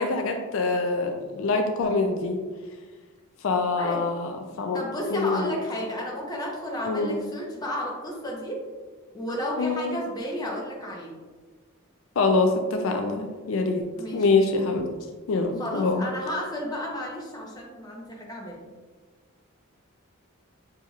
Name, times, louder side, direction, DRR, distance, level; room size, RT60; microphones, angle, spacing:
voice 1, 0.0-2.4 3.4-4.3 4.6-4.8 5.1-5.5 6.8-7.2 9.6-10.0 12.2-13.8 14.1-14.8 15.3-16.0, left 3 dB, 65° left, 4 dB, 0.4 m, -25 dB
voice 2, 4.7-8.6 9.1-11.1 14.0-14.3 15.6-18.6, equal, 20° left, -3 dB, 0.7 m, -32 dB
6.1 x 2.8 x 2.4 m, 1.4 s
head